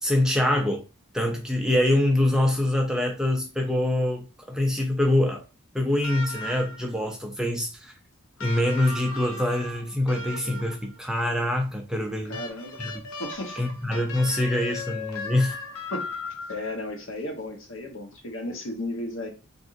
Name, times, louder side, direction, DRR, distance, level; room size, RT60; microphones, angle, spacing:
voice 1, 0.0-0.8 1.1-5.4 5.7-7.9 8.4-12.4 12.8-13.0 13.6-15.6, left 1 dB, 5° right, 2 dB, 0.3 m, -25 dB
sound 1, 6.0-7.0 8.4-11.0 12.3-16.8 18.1-18.2, left 2 dB, 90° left, 0.6 m, -37 dB
voice 2, 12.2-12.8 13.2-13.6 15.9-16.1 16.5-19.3, left 1 dB, 65° left, 3 dB, 0.9 m, -34 dB
3.8 x 2.6 x 2.5 m, 0.31 s
head